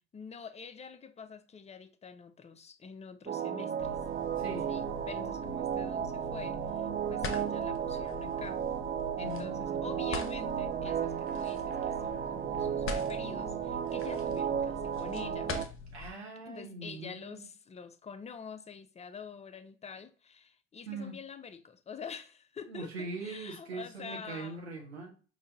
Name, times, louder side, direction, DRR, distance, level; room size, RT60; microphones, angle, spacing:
voice 1, 0.1-4.0 4.7-8.6 9.2-15.6 16.5-24.6, left 6 dB, 20° left, 0.6 m, -46 dB
sound 1, 3.3-15.7, right 9 dB, 30° right, 0.4 m, -34 dB
sound 2, 3.8-16.1, left 4 dB, 40° left, 0.9 m, -44 dB
voice 2, 4.4-4.7 9.2-10.0 15.9-17.4 20.9-21.1 22.7-25.1, right 3 dB, 85° right, 0.9 m, -41 dB
5.0 x 2.7 x 3.9 m
figure-of-eight pair, 50°, 31 cm